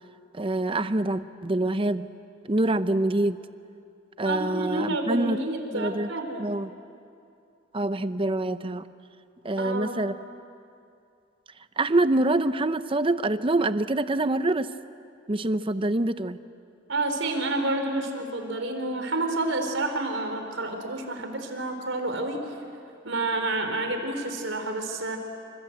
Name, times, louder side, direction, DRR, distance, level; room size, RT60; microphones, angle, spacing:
voice 1, 0.3-2.1 2.4-3.4 4.2-5.4 5.7-6.1 6.4-6.7 7.7-8.8 9.4-10.1 11.8-14.7 15.3-16.4, right 2 dB, 30° right, 12 dB, 0.8 m, -25 dB
voice 2, 4.2-6.5 9.6-10.0 16.9-22.5 23.0-25.2, right 2 dB, 85° right, 5 dB, 4.0 m, -29 dB
27.5 x 27.0 x 8.0 m, 2.5 s
head